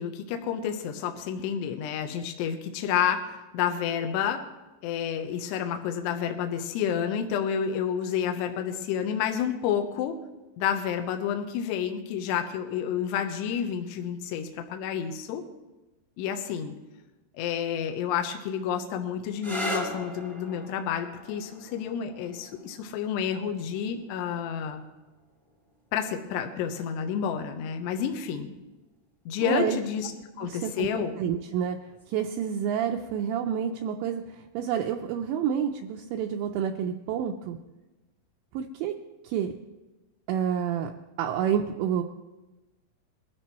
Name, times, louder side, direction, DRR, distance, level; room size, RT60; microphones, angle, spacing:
voice 1, 0.0-4.4 4.8-10.2 10.6-15.4 16.2-16.8 17.3-24.8 25.9-28.5 29.3-30.1 30.4-31.2, left 8 dB, 75° left, 5 dB, 2.7 m, -30 dB
sound 1, 19.3-26.8 27.8-28.3 31.8-32.2, left 1 dB, ahead, 0.7 m, -40 dB
voice 2, 29.4-29.8 30.4-30.9 31.2-31.8 32.1-34.2 34.5-37.6 38.5-38.9 39.2-39.5 40.3-40.9 41.2-42.0, right 8 dB, 80° right, 3 dB, 2.7 m, -28 dB
21.5 x 13.0 x 3.1 m, 1.1 s
omnidirectional pair, 5.7 m